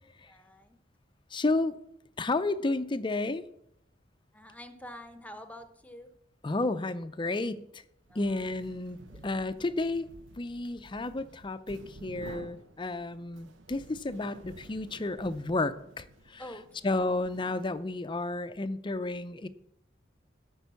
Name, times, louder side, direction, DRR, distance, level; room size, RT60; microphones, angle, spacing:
voice 1, 0.3-0.8 4.3-6.1 8.1-8.4 9.1-9.4 16.4-16.9, left 1 dB, 10° left, 8 dB, 0.9 m, -47 dB
voice 2, 1.3-1.8 2.2-3.4 6.4-7.8 8.1-9.0 9.2-10.1 10.4-16.4 16.8-19.5, left 2 dB, 25° left, 12 dB, 0.5 m, -32 dB
sound 1, 8.1-18.0, right 2 dB, 90° right, 0.8 m, -51 dB
13.0 x 5.4 x 6.9 m, 0.76 s
head